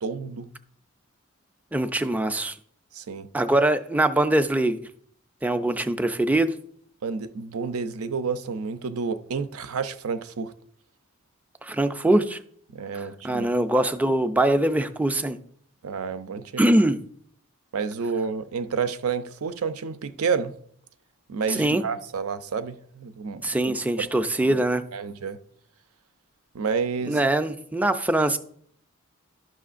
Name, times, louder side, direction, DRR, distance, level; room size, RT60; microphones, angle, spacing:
voice 1, 0.0-0.5 2.9-3.3 7.0-10.5 12.7-13.5 15.8-16.7 17.7-20.5 21.3-24.6 24.9-25.4 26.5-27.2, right 5 dB, 85° right, 0.5 m, -30 dB
voice 2, 1.7-2.6 3.3-4.8 5.4-6.5 11.6-12.4 12.9-15.4 16.6-17.0 21.5-21.8 23.4-24.8 27.1-28.4, right 1 dB, 5° right, 0.3 m, -22 dB
12.0 x 6.3 x 2.5 m
head